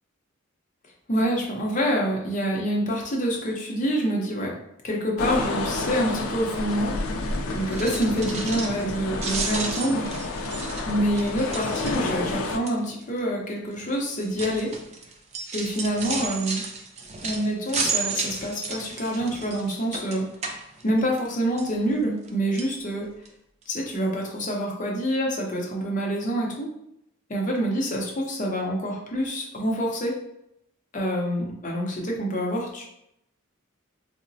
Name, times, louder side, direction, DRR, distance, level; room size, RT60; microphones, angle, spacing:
voice 1, 1.1-4.5 4.8-6.9 7.5-10.1 10.9-14.7 15.5-16.6 17.2-20.3 20.8-23.1 23.7-26.7 27.3-30.2 30.9-32.9, equal, 40° left, -1 dB, 0.6 m, -26 dB
sound 1, 5.2-12.6, left 3 dB, 80° left, 0.4 m, -30 dB
sound 2, 7.6-8.9 9.2-12.3 12.7-13.0 13.7-21.3 21.6-22.3 22.5-22.7 23.3-23.4 23.6-23.7, right 4 dB, 30° right, 0.3 m, -33 dB
3.8 x 2.0 x 2.6 m, 0.79 s
head